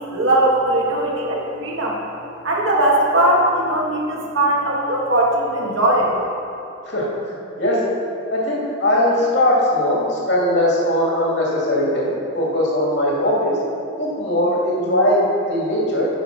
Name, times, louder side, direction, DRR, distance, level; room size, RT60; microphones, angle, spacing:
voice 1, 0.0-2.0 2.4-6.2, right 1 dB, 85° right, -3 dB, 2.0 m, -19 dB
voice 2, 6.9-7.8 8.3-13.6 14.0-16.1, left 1 dB, 65° left, -4 dB, 2.5 m, -20 dB
10.0 x 7.1 x 5.4 m, 2.6 s
head